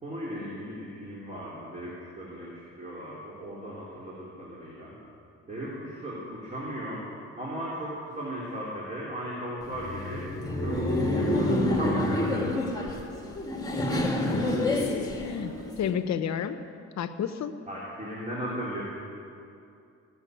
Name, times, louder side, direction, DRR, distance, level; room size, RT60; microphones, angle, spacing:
voice 1, 0.0-4.9 5.5-7.0 7.4-13.0 17.7-18.8, equal, 25° right, -6 dB, 3.5 m, -37 dB
Laughter, 9.6-15.9, left 1 dB, 10° left, 2.0 m, -28 dB
voice 2, 14.0-16.6 17.0-17.5, left 8 dB, 65° left, 11 dB, 0.9 m, -32 dB
16.5 x 7.1 x 9.2 m, 2.6 s
cardioid pair, 90°, 30 cm